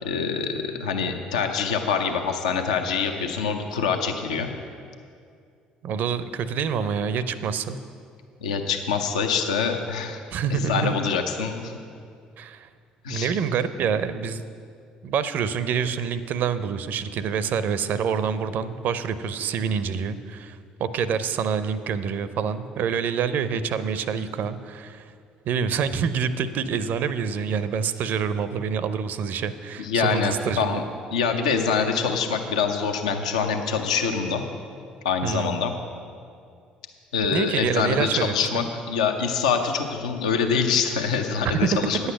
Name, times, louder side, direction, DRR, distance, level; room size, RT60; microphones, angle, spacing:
voice 1, 0.0-4.5 8.4-10.2 10.5-11.7 13.0-13.3 29.8-30.8 31.1-34.4 35.0-35.7 37.1-42.0, left 6 dB, 75° left, 5 dB, 0.6 m, -25 dB
voice 2, 5.8-7.8 10.3-10.9 12.4-12.7 13.1-14.4 15.0-25.0 25.5-30.8 35.2-35.6 37.3-38.7, right 7 dB, 55° right, 13 dB, 0.5 m, -27 dB
9.6 x 8.0 x 5.9 m, 2.3 s
figure-of-eight pair, 50°, 4 cm